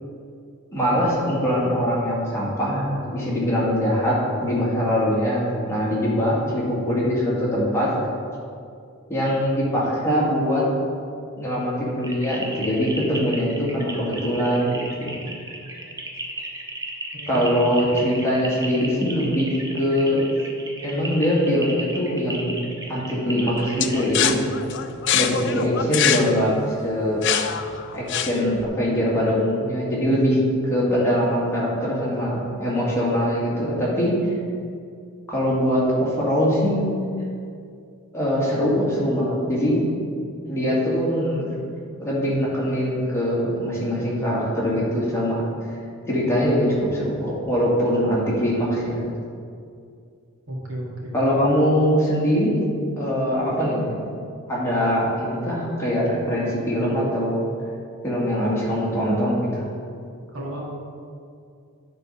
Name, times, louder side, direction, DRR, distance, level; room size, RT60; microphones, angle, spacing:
voice 1, 0.7-7.9 9.1-10.6 11.4-15.2 17.3-20.3 20.8-22.6 22.9-24.3 25.1-26.5 26.8-27.2 27.9-30.4 30.7-34.1 35.3-36.9 38.1-39.8 40.5-41.5 42.0-45.4 46.1-49.1 51.1-52.6 53.0-53.9 54.5-57.4 58.0-59.6, equal, 15° left, -7 dB, 2.1 m, -22 dB
sound 1, 12.0-24.1, right 2 dB, 15° right, 1.0 m, -35 dB
voice 2, 17.1-17.7 50.5-51.2 60.3-60.7, equal, 85° right, -3 dB, 1.8 m, -33 dB
sound 2, 23.8-28.6, left 9 dB, 60° left, 0.4 m, -24 dB
10.5 x 3.9 x 5.6 m, 2.4 s
head